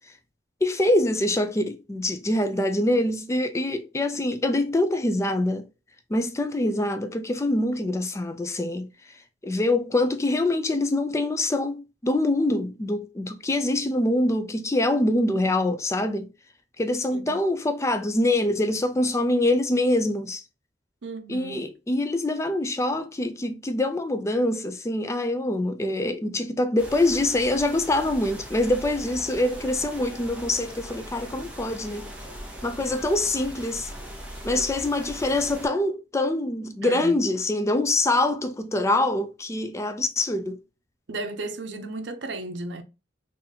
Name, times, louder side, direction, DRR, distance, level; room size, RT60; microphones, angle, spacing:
voice 1, 0.6-5.7 6.1-8.9 9.4-16.3 16.8-20.4 21.3-32.1 32.6-33.9 34.4-40.6, left 1 dB, 15° left, 0.3 m, -24 dB
voice 2, 21.0-21.6 36.8-37.2 41.1-42.8, right 2 dB, 80° right, 0.6 m, -34 dB
sound 1, 26.8-35.7, equal, 5° right, 0.7 m, -40 dB
3.9 x 2.6 x 2.7 m
head